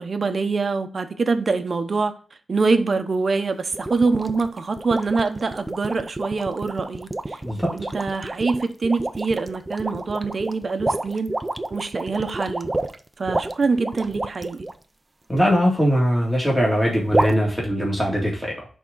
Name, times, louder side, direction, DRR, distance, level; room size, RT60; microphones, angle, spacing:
voice 1, 0.0-2.2 2.5-7.4 7.7-11.4 11.7-12.8 13.2-14.7, right 4 dB, 50° right, 0.9 m, -24 dB
sound 1, 3.7-14.7 17.1-17.3, right 2 dB, 20° right, 0.6 m, -29 dB
voice 2, 15.3-18.7, equal, ahead, 2.2 m, -21 dB
10.5 x 3.7 x 3.9 m
wide cardioid pair, 130°, 0 cm